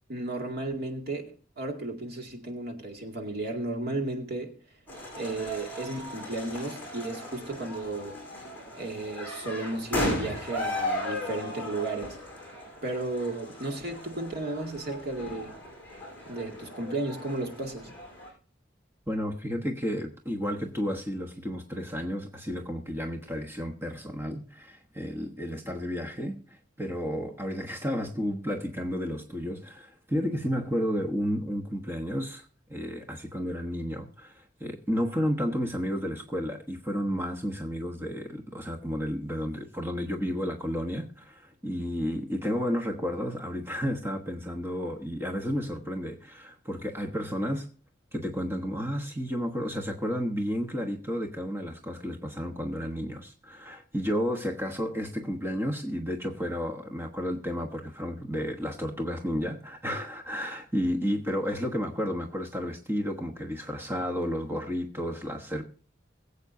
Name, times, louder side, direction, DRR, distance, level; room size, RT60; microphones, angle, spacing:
voice 1, 0.1-4.5 5.1-8.2 8.8-12.2 12.8-15.6 16.3-17.9, right 2 dB, 55° right, 2.3 m, -34 dB
sound 1, 4.9-18.3, left 1 dB, 10° left, 5.4 m, -36 dB
voice 2, 19.1-47.7 48.1-65.6, equal, 15° right, 1.2 m, -32 dB
22.0 x 8.3 x 2.7 m
head